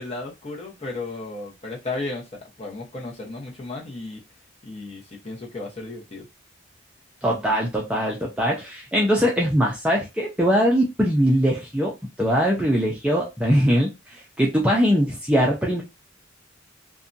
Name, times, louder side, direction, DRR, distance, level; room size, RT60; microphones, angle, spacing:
voice 1, 0.0-4.2 4.6-6.3, left 2 dB, 30° left, 0.8 m, -34 dB
voice 2, 7.2-13.9 14.4-15.8, equal, 5° right, 0.5 m, -21 dB
2.7 x 2.2 x 2.6 m
head